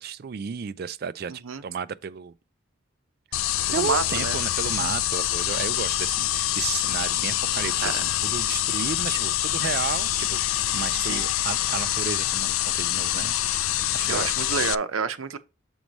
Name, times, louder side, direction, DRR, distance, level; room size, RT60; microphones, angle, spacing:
voice 1, 0.0-2.3 3.7-13.4 13.9-14.3, right 6 dB, 50° right, 0.3 m, -33 dB
voice 2, 1.3-1.6 3.7-4.4 7.8-8.0 11.1-11.2 14.1-15.4, right 5 dB, 85° right, 0.6 m, -28 dB
sound 1, 3.3-14.8, left 13 dB, 80° left, 0.3 m, -26 dB
7.2 x 3.1 x 5.2 m
head